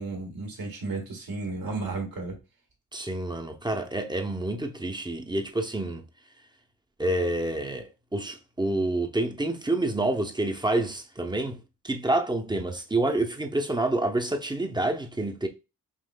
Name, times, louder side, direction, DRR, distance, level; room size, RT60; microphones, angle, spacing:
voice 1, 0.0-2.4, right 3 dB, 75° right, 1.6 m, -33 dB
voice 2, 2.9-6.0 7.0-15.5, right 2 dB, 10° right, 0.7 m, -28 dB
5.3 x 3.0 x 2.2 m
cardioid pair, 55°, 35 cm